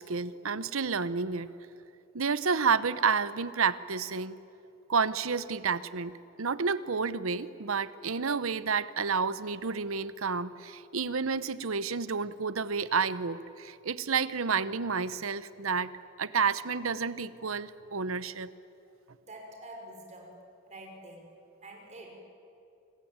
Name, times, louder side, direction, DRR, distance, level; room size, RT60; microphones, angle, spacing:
voice 1, 0.0-1.5 2.1-4.4 4.9-6.1 6.4-15.9 16.2-18.5, right 5 dB, 70° right, 15 dB, 0.9 m, -30 dB
voice 2, 19.2-20.4 20.7-21.3 21.6-22.1, right 1 dB, 35° right, 1 dB, 5.7 m, -47 dB
28.5 x 20.0 x 8.9 m, 2.7 s
head